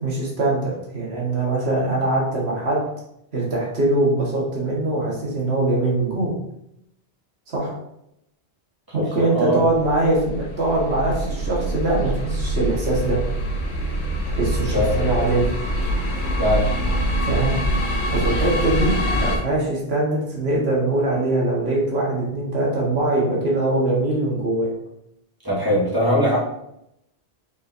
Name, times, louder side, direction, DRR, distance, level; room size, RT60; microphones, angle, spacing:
voice 1, 0.0-2.8 3.3-6.3 7.5-7.7 8.9-13.2 14.3-15.5 17.2-17.6 18.1-24.7, right 2 dB, 75° right, -4 dB, 1.6 m, -22 dB
voice 2, 8.9-9.6 14.7-14.9 16.4-16.7 25.4-26.4, equal, 20° right, -6 dB, 1.5 m, -21 dB
sound 1, 9.6-19.4, right 1 dB, 80° left, 1.1 m, -24 dB
5.2 x 4.0 x 2.5 m, 0.80 s
omnidirectional pair, 1.1 m